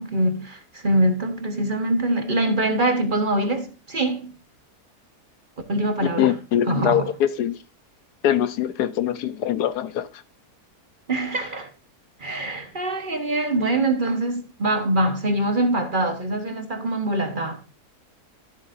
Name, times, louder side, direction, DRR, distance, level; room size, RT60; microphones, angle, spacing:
voice 1, 0.0-4.3 5.7-6.4 6.6-7.1 11.1-11.7 12.2-17.6, right 1 dB, 35° right, 1.3 m, -24 dB
voice 2, 6.2-7.5 8.2-10.1, left 10 dB, 90° left, 1.4 m, -23 dB
13.0 x 8.0 x 2.6 m
omnidirectional pair, 1.6 m